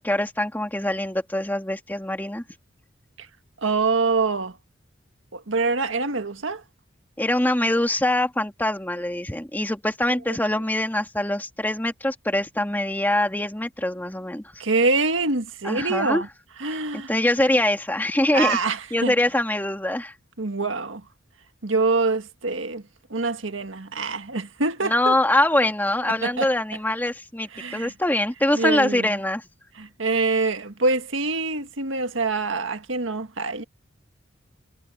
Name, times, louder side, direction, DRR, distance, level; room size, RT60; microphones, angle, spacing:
voice 1, 0.0-2.4 7.2-14.6 15.6-16.2 17.1-18.6 18.9-20.1 24.8-29.4, left 1 dB, 10° left, 2.1 m, -24 dB
voice 2, 3.6-4.6 5.3-6.6 10.3-10.4 14.6-16.3 16.6-17.1 18.3-19.1 20.4-21.0 21.6-22.8 23.1-25.2 26.2-26.5 27.5-27.9 28.5-29.2 29.8-33.6, right 3 dB, 85° right, 1.7 m, -25 dB
head